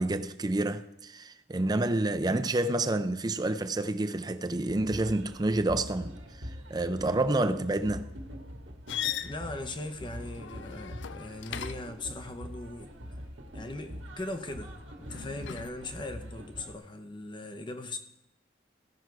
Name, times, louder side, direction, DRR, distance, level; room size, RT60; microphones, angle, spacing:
voice 1, 0.0-6.2 6.7-8.0, right 2 dB, 20° right, 0.5 m, -28 dB
sound 1, 4.7-16.7, equal, 90° right, 1.7 m, -44 dB
sound 2, 8.9-12.0 15.0-15.7, left 10 dB, 70° left, 0.4 m, -38 dB
voice 2, 9.2-13.2 13.5-18.0, left 2 dB, 25° left, 0.8 m, -40 dB
16.0 x 6.2 x 4.6 m
head